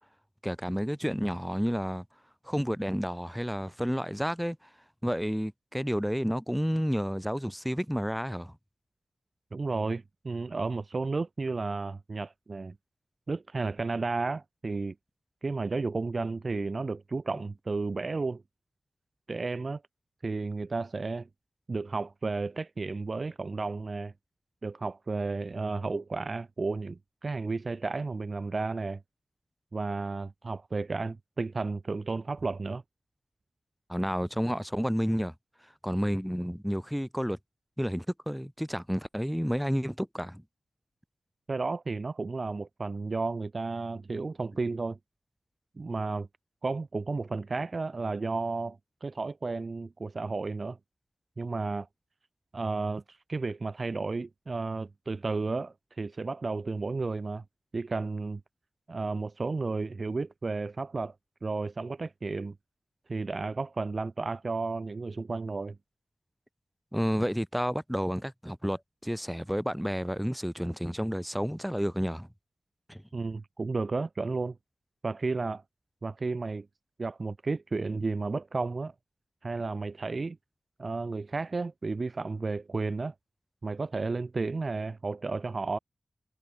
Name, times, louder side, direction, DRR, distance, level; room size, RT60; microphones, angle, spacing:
voice 1, 0.4-2.0 2.5-4.6 5.0-8.5 17.3-17.4 33.9-35.3 35.8-37.4 37.8-40.4 66.9-72.3 72.9-73.0, equal, ahead, 3.2 m, -30 dB
voice 2, 9.5-12.7 13.3-14.9 15.4-18.4 19.3-19.8 20.2-21.3 21.7-24.1 24.6-29.0 29.7-32.8 41.5-45.0 45.8-46.3 46.6-50.8 51.4-51.9 52.5-57.4 57.7-58.4 58.9-61.1 61.4-62.5 63.1-65.8 73.1-74.6 75.0-75.6 76.0-76.7 77.0-78.9 79.4-80.4 80.8-83.1 83.6-85.8, right 3 dB, 40° right, 0.7 m, -32 dB
wide cardioid pair, 125°, 0 cm